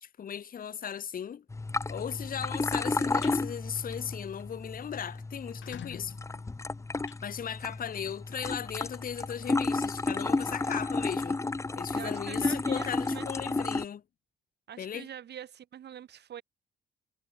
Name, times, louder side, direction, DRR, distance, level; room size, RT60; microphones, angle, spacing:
voice 1, 0.0-1.4 1.9-6.1 7.2-11.4 11.8-14.0 14.8-15.1, left 8 dB, 45° left, 0.8 m, -37 dB
sound 1, 1.5-13.8, left 3 dB, 15° left, 0.6 m, -32 dB
sound 2, 3.2-3.4 3.8-4.1 4.4-4.5 4.8-4.9 5.4-7.9, left 11 dB, 70° left, 6.7 m, -49 dB
voice 2, 11.9-13.3 14.7-16.4, right 10 dB, 60° right, 1.3 m, -44 dB
cardioid pair, 90°, 20 cm